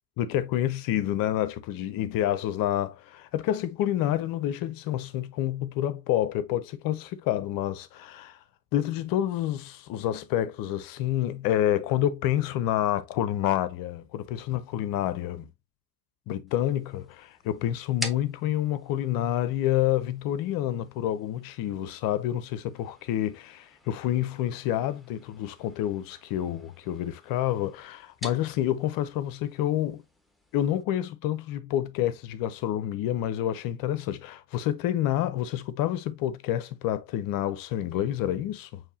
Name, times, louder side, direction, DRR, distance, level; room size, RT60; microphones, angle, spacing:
voice 1, 0.2-8.4 8.7-15.5 16.3-30.0 30.5-38.8, left 12 dB, 45° left, 0.6 m, -28 dB
sound 1, 16.5-30.8, left 1 dB, ahead, 1.0 m, -47 dB
6.5 x 3.1 x 2.6 m
hypercardioid pair, 70°, 50 cm